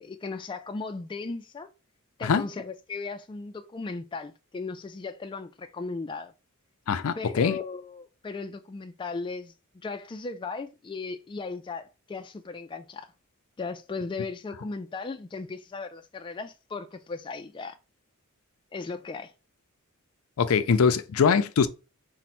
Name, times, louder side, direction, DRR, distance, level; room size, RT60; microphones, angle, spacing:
voice 1, 0.0-1.7 2.2-6.3 7.1-13.1 13.6-17.7 18.7-19.3, left 4 dB, 25° left, 0.3 m, -37 dB
voice 2, 6.9-7.6 20.4-21.7, left 6 dB, 80° left, 0.5 m, -22 dB
4.3 x 2.1 x 4.2 m
head